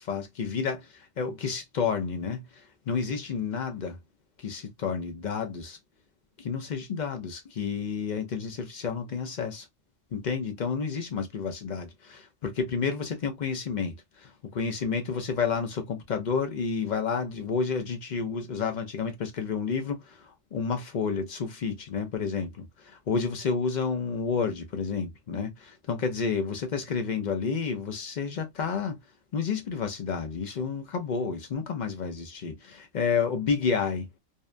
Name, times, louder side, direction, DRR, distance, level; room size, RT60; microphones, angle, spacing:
voice 1, 0.0-4.0 4.4-5.8 6.4-9.7 10.1-25.5 25.9-29.0 29.3-34.1, left 5 dB, 55° left, 0.5 m, -30 dB
2.7 x 2.2 x 2.4 m
omnidirectional pair, 1.3 m